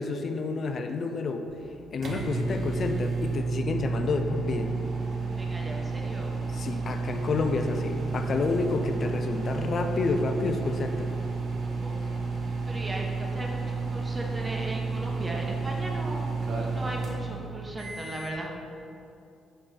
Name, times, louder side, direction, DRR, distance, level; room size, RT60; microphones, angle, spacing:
voice 1, 0.0-1.5 1.9-4.8 6.5-11.1, left 4 dB, 50° left, 6 dB, 0.6 m, -29 dB
sound 1, 1.5-18.4, right 4 dB, 60° right, 1.1 m, -31 dB
voice 2, 5.4-6.3 11.8-12.1 12.7-16.3 16.7-18.5, right 1 dB, 25° right, 0 dB, 1.2 m, -37 dB
7.5 x 4.3 x 5.0 m, 2.5 s
cardioid pair, 90°, 0 cm